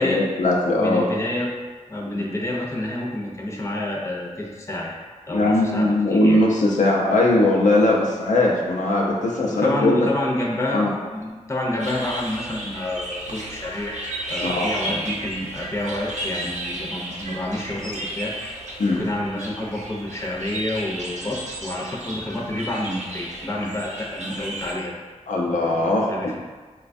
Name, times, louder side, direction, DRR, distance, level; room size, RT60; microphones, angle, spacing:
voice 1, 0.0-1.1 2.1-2.2 5.3-10.1 10.7-10.9 14.4-15.0 18.8-19.0 25.3-26.4, left 2 dB, 90° left, -2 dB, 0.5 m, -20 dB
voice 2, 0.7-1.5 1.9-5.0 5.3-6.4 9.5-13.9 14.3-18.4 18.9-24.9 26.1-26.4, left 1 dB, 20° left, -3 dB, 0.5 m, -28 dB
sound 1, 11.8-24.7, right 1 dB, 70° right, 0.6 m, -33 dB
3.9 x 2.2 x 2.5 m, 1.4 s
wide cardioid pair, 80°, 13 cm